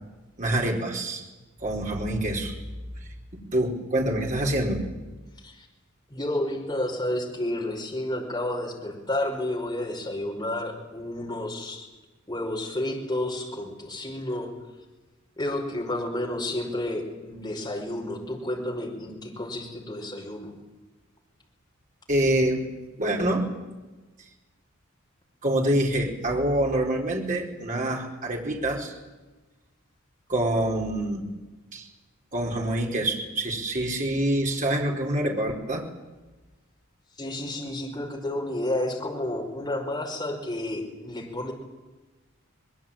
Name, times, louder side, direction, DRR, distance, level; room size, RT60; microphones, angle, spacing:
voice 1, 0.4-1.2 1.6-2.6 3.3-4.9 22.1-22.6 23.0-23.5 25.4-28.9 30.3-31.3 31.7-31.9 32.3-35.9, right 1 dB, 40° right, 0 dB, 4.5 m, -26 dB
voice 2, 6.1-11.9 12.3-14.5 15.4-20.6 37.2-41.5, left 1 dB, 20° left, 0 dB, 5.4 m, -31 dB
24.5 x 21.0 x 8.9 m, 1.2 s
head